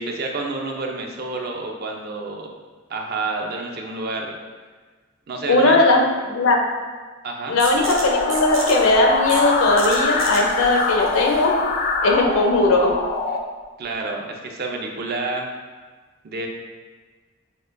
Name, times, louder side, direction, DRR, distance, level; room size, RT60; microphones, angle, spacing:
voice 1, 0.0-2.5 2.9-4.4 5.3-5.8 7.2-7.6 13.8-15.5 16.2-16.5, right 3 dB, 50° right, 1 dB, 0.5 m, -29 dB
voice 2, 5.5-6.6 7.5-11.5 12.0-12.9, left 2 dB, 85° left, 2 dB, 0.6 m, -18 dB
sound 1, 7.6-13.1, right 3 dB, 90° right, 0.7 m, -35 dB
sound 2, 7.8-13.4, left 3 dB, 45° left, 0.3 m, -24 dB
6.4 x 2.2 x 2.5 m, 1.4 s
head